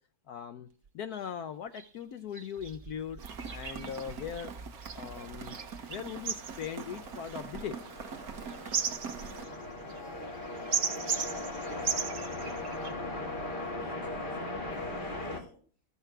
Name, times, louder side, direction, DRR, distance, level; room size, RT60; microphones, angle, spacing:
voice 1, 0.3-0.7 0.9-3.2 3.5-4.5 4.9-5.6 5.9-7.8, left 8 dB, 70° left, 10 dB, 1.1 m, -39 dB
sound 1, 0.8-0.9 1.1-1.3 1.7-1.9 2.3-12.9, right 6 dB, 45° right, 1.4 m, -37 dB
Rain, 3.2-9.5, right 6 dB, 60° right, 1.5 m, -44 dB
sound 2, 5.2-15.4, left 2 dB, 30° left, 2.1 m, -39 dB
voice 2, 9.2-10.4 10.7-12.5 13.0-15.6, left 1 dB, 15° right, 1 dB, 5.1 m, -54 dB
14.0 x 5.7 x 6.0 m, 0.43 s
omnidirectional pair, 1.8 m